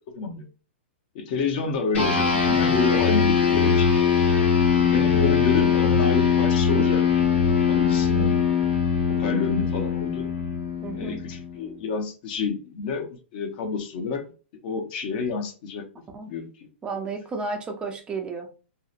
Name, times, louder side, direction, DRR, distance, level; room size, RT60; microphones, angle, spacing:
voice 1, 0.1-0.5 1.1-3.9 4.7-7.4 7.7-8.4 9.2-10.3 10.9-14.2 14.6-15.8 16.3-16.5, left 4 dB, 50° left, 0.6 m, -29 dB
sound 1, 1.9-11.7, left 6 dB, 80° left, 1.2 m, -21 dB
voice 2, 10.8-11.2 16.1-16.3 16.8-18.5, right 4 dB, 15° right, 0.4 m, -32 dB
2.8 x 2.0 x 2.4 m
hypercardioid pair, 145°, 6 cm